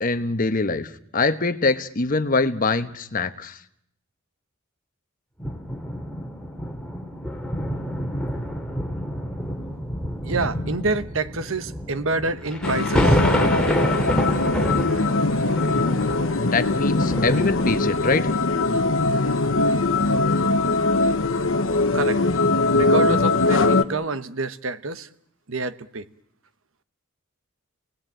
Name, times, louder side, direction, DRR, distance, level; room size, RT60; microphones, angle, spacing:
voice 1, 0.0-3.6 16.4-18.3, left 3 dB, 40° left, 1.1 m, -24 dB
sound 1, 5.4-18.2 18.9-19.0, equal, 5° left, 2.5 m, -27 dB
voice 2, 10.2-13.2 21.9-22.2 22.8-25.1 25.5-26.0, right 3 dB, 65° right, 1.1 m, -27 dB
sound 2, 12.6-23.8, left 3 dB, 65° left, 1.1 m, -21 dB
28.5 x 19.0 x 9.0 m
head